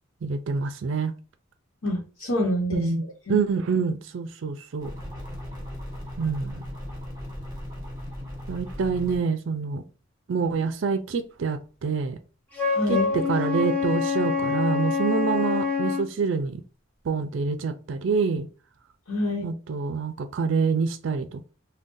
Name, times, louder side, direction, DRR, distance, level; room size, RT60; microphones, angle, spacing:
voice 1, 0.2-1.1 2.7-3.0 3.3-4.9 6.2-6.6 8.5-9.8 10.3-12.2 12.9-16.6 17.1-18.5 19.4-21.5, right 5 dB, 65° right, 0.4 m, -26 dB
voice 2, 1.8-2.8 3.3-3.4 12.7-13.1 19.1-19.4, left 1 dB, 85° left, 1.0 m, -26 dB
sound 1, 4.8-9.2, left 1 dB, 20° right, 1.2 m, -37 dB
Wind instrument woodwind instrument, 12.5-16.1, left 5 dB, 10° left, 0.8 m, -25 dB
3.7 x 2.2 x 2.6 m
head